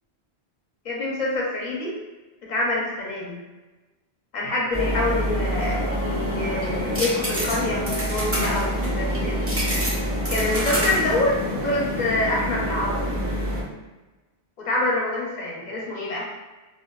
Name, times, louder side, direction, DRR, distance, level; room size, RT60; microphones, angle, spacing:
voice 1, 0.8-2.0 2.4-3.4 4.3-9.4 10.3-13.2 14.6-16.3, left 2 dB, 50° left, -3 dB, 0.6 m, -26 dB
sound 1, 4.7-13.6, equal, 25° right, 0.3 m, -26 dB
2.6 x 2.2 x 2.2 m, 1.2 s
omnidirectional pair, 1.1 m